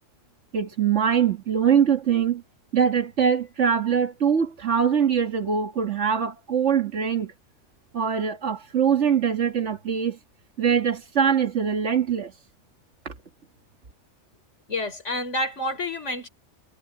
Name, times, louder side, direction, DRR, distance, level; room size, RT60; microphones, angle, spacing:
voice 1, 0.5-2.4 2.7-7.3 7.9-10.2 10.6-12.3 13.1-13.2, right 7 dB, 80° right, 2.0 m, -23 dB
voice 2, 14.7-16.3, left 1 dB, 85° left, 3.9 m, -28 dB
omnidirectional pair, 1.2 m